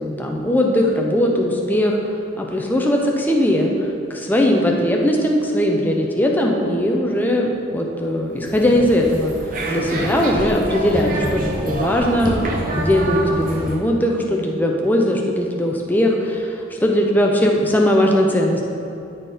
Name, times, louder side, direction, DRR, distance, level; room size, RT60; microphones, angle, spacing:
voice 1, 0.0-2.0 2.4-9.3 9.7-12.5 12.8-18.6, left 1 dB, 10° left, 0 dB, 0.7 m, -19 dB
sound 1, 8.4-13.8, right 1 dB, 45° right, 0.9 m, -26 dB
12.5 x 4.3 x 3.6 m, 2.8 s
head